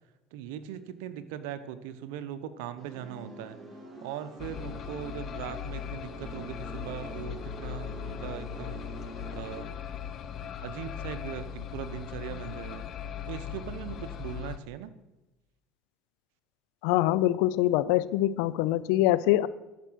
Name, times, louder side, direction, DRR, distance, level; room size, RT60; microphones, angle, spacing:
voice 1, 0.3-3.6 4.0-8.8 9.3-9.9 10.4-12.8 13.3-14.9, right 10 dB, 80° right, 11 dB, 0.8 m, -40 dB
sound 1, 2.8-9.6, right 1 dB, 15° right, 2.5 m, -46 dB
sound 2, 4.4-14.6, left 9 dB, 50° left, 0.7 m, -39 dB
voice 2, 16.8-19.5, left 15 dB, 80° left, 17 dB, 0.5 m, -24 dB
12.0 x 6.0 x 6.3 m, 1.0 s
supercardioid pair, 100°, 0 cm